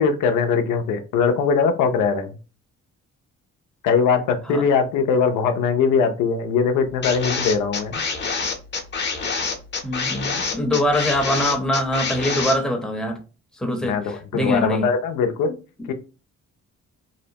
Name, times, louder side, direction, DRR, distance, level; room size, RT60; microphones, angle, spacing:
voice 1, 0.0-2.3 3.8-8.0 13.8-15.6 15.9-16.0, left 5 dB, 90° left, 0.5 m, -21 dB
sound 1, 7.0-12.6, left 4 dB, 35° left, 0.7 m, -26 dB
voice 2, 9.8-13.2 13.6-14.9, left 1 dB, ahead, 0.7 m, -23 dB
2.7 x 2.1 x 2.7 m
cardioid pair, 90°, 30 cm